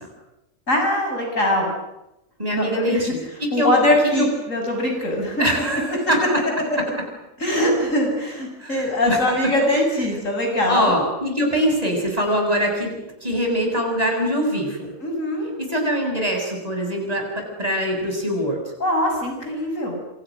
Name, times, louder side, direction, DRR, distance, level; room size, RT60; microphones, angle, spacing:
voice 1, 0.7-1.7 2.5-3.0 3.5-5.5 7.4-10.9 15.0-15.5 18.8-20.0, left 1 dB, 70° left, 2 dB, 7.3 m, -22 dB
voice 2, 2.4-3.7 4.2-4.3 5.4-6.2 8.6-9.5 10.7-14.9 15.6-18.6, equal, 25° right, 2 dB, 7.2 m, -23 dB
28.0 x 26.5 x 6.4 m, 0.91 s
omnidirectional pair, 1.4 m